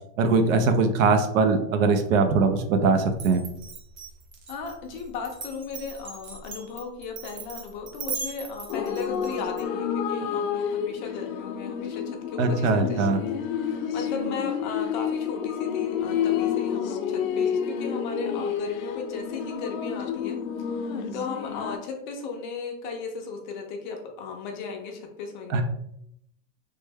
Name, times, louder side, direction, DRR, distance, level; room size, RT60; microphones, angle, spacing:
voice 1, 0.2-3.4 12.4-13.2 25.5-25.6, right 4 dB, 80° right, 7 dB, 0.7 m, -21 dB
Glass, 3.1-9.6, right 5 dB, 45° right, 0.7 m, -38 dB
voice 2, 4.5-13.0 13.4-20.4 20.6-25.6, left 5 dB, 35° left, 2 dB, 0.5 m, -36 dB
sound 1, 8.7-21.8, left 7 dB, 90° left, 0.6 m, -29 dB
3.3 x 2.2 x 3.3 m, 0.77 s
supercardioid pair, 170°, 40 cm